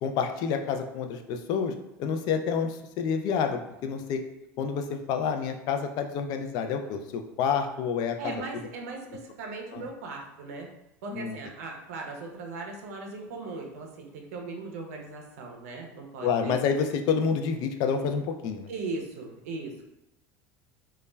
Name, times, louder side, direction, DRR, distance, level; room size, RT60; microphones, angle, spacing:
voice 1, 0.0-1.7 2.0-4.2 4.6-8.3 9.7-9.8 11.1-11.4 16.2-18.7, left 6 dB, 60° left, 6 dB, 0.3 m, -28 dB
voice 2, 8.2-10.7 11.0-16.6 18.7-19.9, right 3 dB, 85° right, 2 dB, 0.5 m, -38 dB
2.2 x 2.0 x 3.2 m, 0.87 s
supercardioid pair, 95°, 8 cm